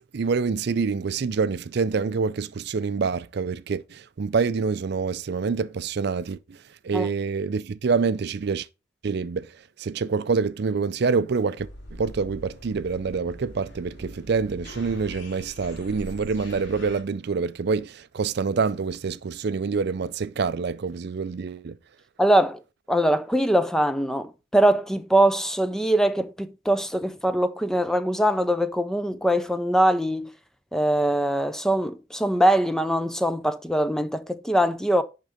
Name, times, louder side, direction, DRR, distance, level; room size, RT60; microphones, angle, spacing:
voice 1, 0.0-6.4 6.8-8.7 9.0-9.5 9.8-11.7 12.0-21.7, right 5 dB, 55° right, 0.4 m, -26 dB
sound 1, 11.6-17.0, equal, 60° left, 2.4 m, -42 dB
voice 2, 22.2-22.6 22.9-30.3 30.7-35.0, right 1 dB, 5° left, 0.4 m, -22 dB
10.5 x 3.7 x 5.1 m
head